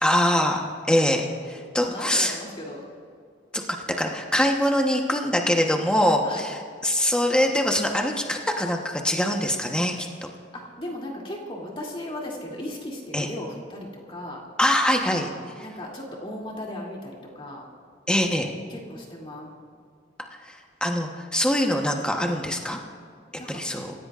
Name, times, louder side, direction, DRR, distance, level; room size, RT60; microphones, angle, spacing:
voice 1, 0.0-2.4 3.5-3.6 4.0-10.1 13.1-13.3 14.6-15.3 18.1-18.5 20.4-20.5 20.8-22.8 23.5-23.9, left 1 dB, 5° left, 1 dB, 1.1 m, -23 dB
voice 2, 1.8-2.8 6.2-6.4 10.5-14.4 15.6-17.7 18.7-19.5 22.6-22.7 23.4-23.6, left 1 dB, 30° left, -2 dB, 2.7 m, -36 dB
27.5 x 16.0 x 2.5 m, 2.2 s
head